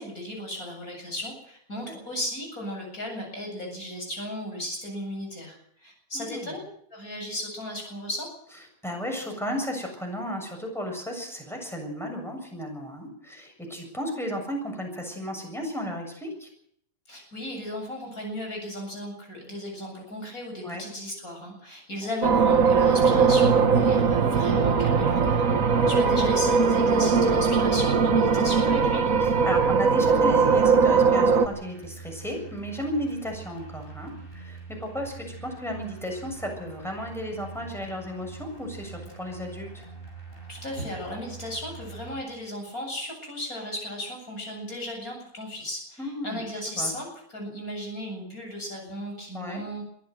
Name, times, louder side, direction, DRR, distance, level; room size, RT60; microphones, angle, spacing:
voice 1, 0.0-6.6 6.9-8.3 17.1-29.0 40.5-47.1 47.3-49.8, left 1 dB, 85° left, 2 dB, 8.4 m, -35 dB
voice 2, 6.1-6.6 8.8-16.5 20.6-20.8 25.7-26.1 29.2-39.9 46.0-46.4 46.8-46.9 49.3-49.6, equal, ahead, 2 dB, 7.2 m, -34 dB
sound 1, 22.2-31.5, right 5 dB, 70° right, 1.8 m, -20 dB
sound 2, 22.3-42.2, right 4 dB, 40° left, 7.3 m, -44 dB
23.0 x 15.5 x 7.9 m, 0.68 s
omnidirectional pair, 1.5 m